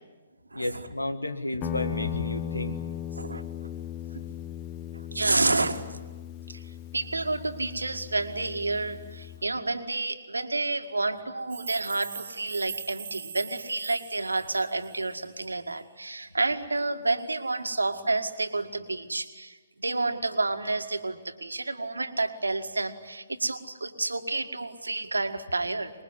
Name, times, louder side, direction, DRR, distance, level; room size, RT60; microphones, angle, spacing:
voice 1, 0.5-2.8 5.3-5.6, left 1 dB, 85° left, 9 dB, 2.0 m, -32 dB
Guitar, 1.6-9.4, left 10 dB, 25° left, 1.0 m, -37 dB
voice 2, 4.9-6.0 6.5-6.6 6.9-25.9, right 3 dB, 80° right, 8 dB, 2.0 m, -30 dB
sound 1, 11.5-15.4, right 8 dB, 50° right, 1.2 m, -42 dB
25.5 x 21.5 x 9.7 m, 1.3 s
figure-of-eight pair, 130°, 0 cm